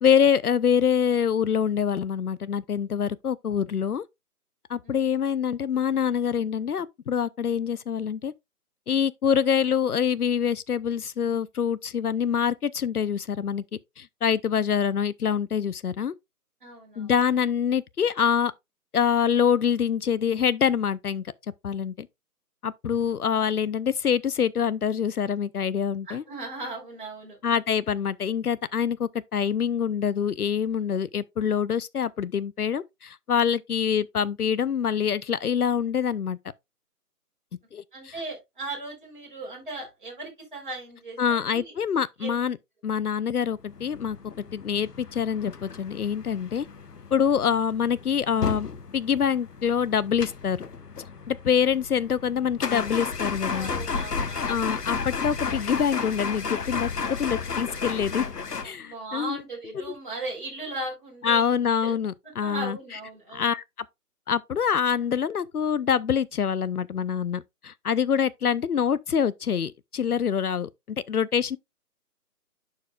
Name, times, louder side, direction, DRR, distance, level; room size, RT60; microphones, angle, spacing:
voice 1, 0.0-4.0 4.7-8.3 8.9-13.6 14.0-16.1 17.0-18.5 18.9-21.2 21.6-22.1 22.6-26.2 27.4-36.4 37.7-38.1 41.2-42.6 42.8-44.2 44.5-46.7 47.1-48.7 48.9-50.6 51.3-53.7 54.5-56.9 57.2-58.3 58.6-59.4 59.7-59.8 61.2-62.8 63.3-63.6 64.3-71.6, left 7 dB, 75° left, 0.6 m, -25 dB
voice 2, 16.6-17.1 26.1-27.4 37.9-41.7 42.2-42.4 53.5-54.6 58.6-61.5 61.8-61.9 62.4-63.5, right 2 dB, 30° right, 4.0 m, -37 dB
sound 1, 43.7-58.7, left 5 dB, 90° left, 1.1 m, -33 dB
11.0 x 4.7 x 2.3 m
figure-of-eight pair, 180°, 46 cm